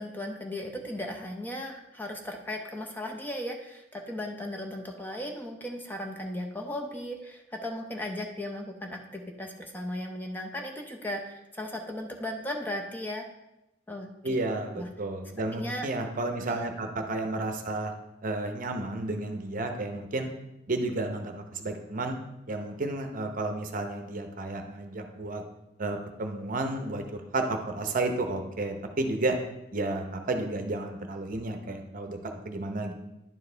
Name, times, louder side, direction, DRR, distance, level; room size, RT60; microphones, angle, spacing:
voice 1, 0.0-13.3 13.9-14.1 14.8-14.9 15.5-15.9, left 1 dB, 10° left, 1 dB, 0.6 m, -36 dB
voice 2, 14.2-17.9 18.2-20.3 20.7-22.2 22.5-25.4 25.8-29.4 29.7-32.9, right 2 dB, 45° right, 5 dB, 0.7 m, -32 dB
10.5 x 4.7 x 3.3 m, 0.91 s
head